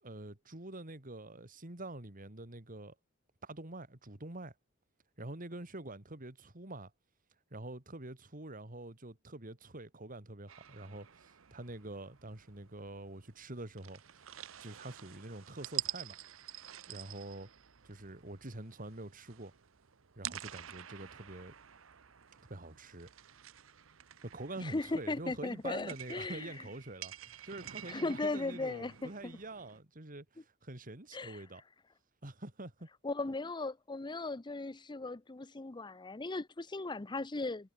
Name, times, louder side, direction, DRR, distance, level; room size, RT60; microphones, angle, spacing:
voice 1, 0.0-2.9 3.4-4.5 5.2-6.9 7.5-14.0 14.6-16.2 16.9-17.5 17.8-19.5 20.2-21.5 22.5-23.1 24.2-31.6 32.2-32.9, right 2 dB, 45° right, 2.6 m, -46 dB
sound 1, 10.5-29.8, right 12 dB, 80° right, 0.9 m, -48 dB
voice 2, 24.6-26.5 27.9-29.4 31.1-31.4 33.0-37.7, left 2 dB, 20° left, 0.6 m, -37 dB
head